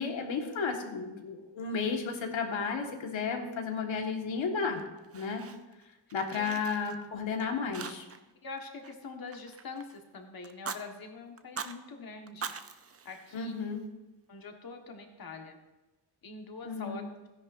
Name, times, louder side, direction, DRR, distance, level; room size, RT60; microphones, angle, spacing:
voice 1, 0.0-4.8 5.1-5.4 6.1-8.0 13.3-13.8 16.6-17.0, left 5 dB, 85° left, 3 dB, 1.7 m, -33 dB
Fire, 4.7-5.8 6.1-7.3 7.7-8.3 8.6-10.0 10.4-10.8 11.4-11.8 12.3-13.8, right 6 dB, 35° right, 0.5 m, -43 dB
voice 2, 8.4-12.5 13.0-13.5 14.3-15.6 16.2-17.1, left 4 dB, 50° left, 3 dB, 1.5 m, -44 dB
16.0 x 10.5 x 2.6 m, 1.1 s
wide cardioid pair, 150°, 45 cm